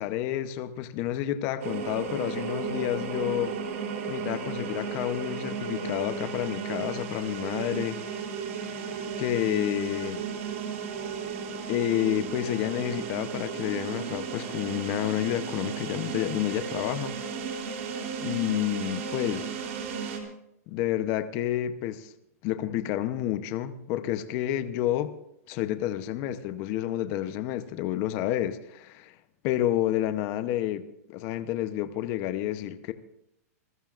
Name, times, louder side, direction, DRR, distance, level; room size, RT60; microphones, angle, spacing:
voice 1, 0.0-3.5 4.1-8.0 8.6-8.7 9.2-10.2 11.7-17.2 18.2-19.5 20.7-22.1 22.4-25.1 25.5-29.2 29.4-30.8 31.1-32.9, left 12 dB, 30° left, 11 dB, 0.8 m, -29 dB
sound 1, 1.6-20.2, right 6 dB, 55° right, 3.4 m, -34 dB
28.0 x 15.0 x 2.5 m, 0.80 s
supercardioid pair, 165°, 8 cm